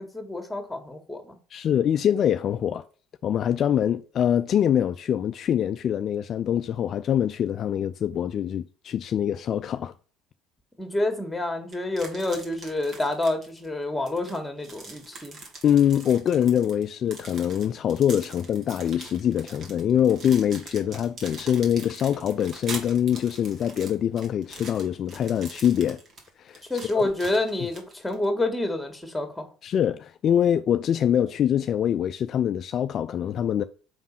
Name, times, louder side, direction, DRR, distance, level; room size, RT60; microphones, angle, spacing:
voice 1, 0.0-1.4 10.8-15.4 26.7-29.4, left 2 dB, 5° left, 1.9 m, -28 dB
voice 2, 1.5-2.8 3.2-9.9 15.6-26.0 26.4-26.6 26.9-27.1 29.6-33.6, left 9 dB, 50° left, 0.3 m, -24 dB
sound 1, 11.7-13.7 14.1-28.3, right 3 dB, 50° right, 1.9 m, -43 dB
5.1 x 3.7 x 5.6 m
supercardioid pair, 80°, 0 cm